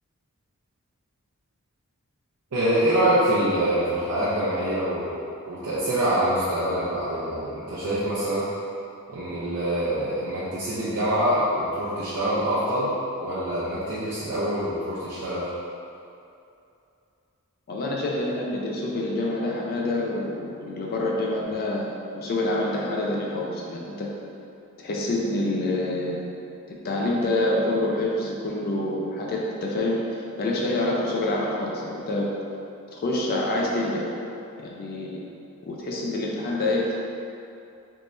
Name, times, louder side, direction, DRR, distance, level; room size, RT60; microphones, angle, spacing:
voice 1, 2.5-5.2 5.5-8.4 9.1-15.5, right 1 dB, 75° right, -11 dB, 0.7 m, -25 dB
voice 2, 17.7-21.9 22.1-24.1 24.8-26.2 26.8-30.0 30.4-32.3 32.9-34.1 34.6-35.2 35.7-36.9, left 2 dB, 45° left, -3 dB, 0.4 m, -26 dB
3.5 x 3.1 x 2.6 m, 2.6 s
head